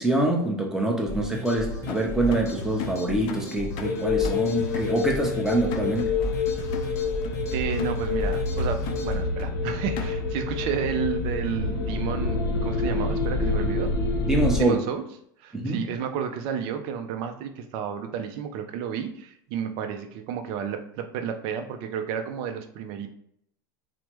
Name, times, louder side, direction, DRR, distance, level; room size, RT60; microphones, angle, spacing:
voice 1, 0.0-6.1 14.3-14.8 15.5-15.9, right 1 dB, 5° right, -1 dB, 0.7 m, -25 dB
sound 1, 1.1-9.2, equal, 30° left, 0.8 m, -35 dB
sound 2, 1.9-10.5, left 9 dB, 50° left, 0.4 m, -39 dB
sound 3, 3.8-14.6, left 3 dB, 85° left, 0.7 m, -27 dB
voice 2, 7.5-13.9 14.6-15.0 15.4-23.1, right 8 dB, 55° right, 7 dB, 0.4 m, -31 dB
3.2 x 2.0 x 3.0 m, 0.68 s
hypercardioid pair, 100°, 11 cm